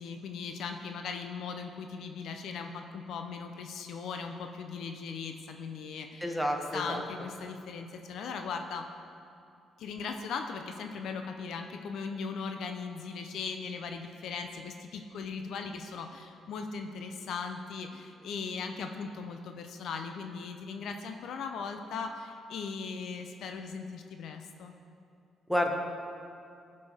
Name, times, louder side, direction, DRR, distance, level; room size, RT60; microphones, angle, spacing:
voice 1, 0.0-6.4 6.7-8.9 9.8-24.7, left 5 dB, 75° left, 5 dB, 0.6 m, -38 dB
voice 2, 6.2-7.0 25.5-25.7, left 1 dB, 5° left, 2 dB, 1.0 m, -29 dB
15.5 x 5.3 x 3.5 m, 2.5 s
cardioid pair, 90°, 0 cm